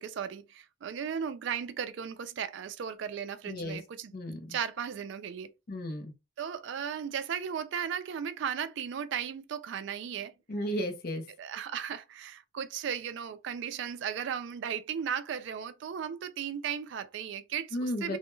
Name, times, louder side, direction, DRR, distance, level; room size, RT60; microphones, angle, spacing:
voice 1, 0.0-4.1 4.5-5.5 6.4-10.3 11.4-18.2, right 8 dB, 65° right, 0.3 m, -36 dB
voice 2, 3.5-3.8 4.1-4.6 5.7-6.1 10.5-11.2 17.7-18.2, equal, 50° left, 0.5 m, -34 dB
2.2 x 2.1 x 3.0 m
head